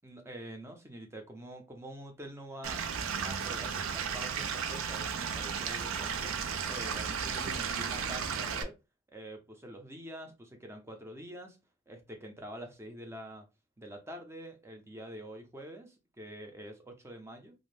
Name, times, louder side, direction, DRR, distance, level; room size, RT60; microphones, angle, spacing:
voice 1, 0.0-2.8 3.2-8.7 9.1-11.6 11.9-13.5 13.8-17.5, right 1 dB, 10° right, 0.4 m, -46 dB
Stream / Liquid, 2.6-8.6, right 6 dB, 80° right, 0.4 m, -34 dB
2.5 x 2.0 x 3.1 m
head